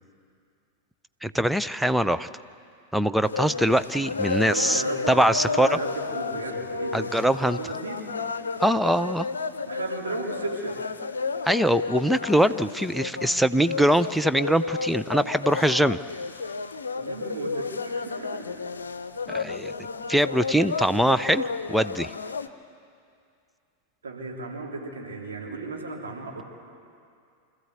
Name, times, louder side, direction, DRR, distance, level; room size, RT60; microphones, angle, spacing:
voice 1, 1.2-2.3 2.9-5.8 6.9-7.6 8.6-9.3 11.4-16.0 19.3-19.7 20.1-22.1, right 1 dB, ahead, 12 dB, 0.5 m, -23 dB
sound 1, 3.2-22.5, left 4 dB, 70° left, 0.7 m, -32 dB
voice 2, 4.5-7.1 7.6-8.1 9.7-10.8 17.0-18.6 24.0-26.4, right 3 dB, 70° right, -1 dB, 3.3 m, -35 dB
26.0 x 14.0 x 8.2 m, 2.4 s
figure-of-eight pair, 90°, 0 cm